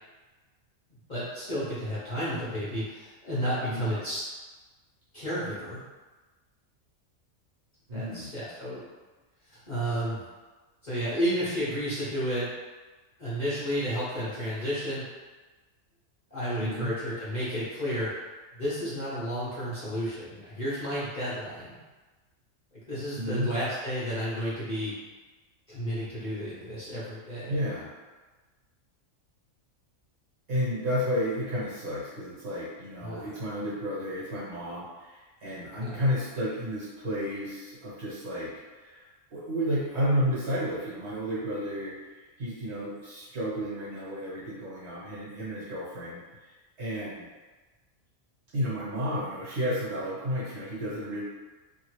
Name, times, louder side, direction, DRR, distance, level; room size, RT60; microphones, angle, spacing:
voice 1, 1.1-4.2 5.1-5.8 7.9-8.9 9.5-10.2 10.8-12.5 13.2-15.0 16.3-18.1 18.5-21.8 22.9-24.9 25.7-27.6 33.0-33.3 35.8-36.0, equal, 40° left, -10 dB, 0.8 m, -32 dB
voice 2, 3.6-3.9 7.9-8.3 16.6-16.9 23.1-23.5 27.5-27.9 30.5-46.5 46.8-47.2 48.5-51.2, equal, 55° right, -8 dB, 1.4 m, -32 dB
2.8 x 2.4 x 3.1 m, 1.3 s
omnidirectional pair, 1.4 m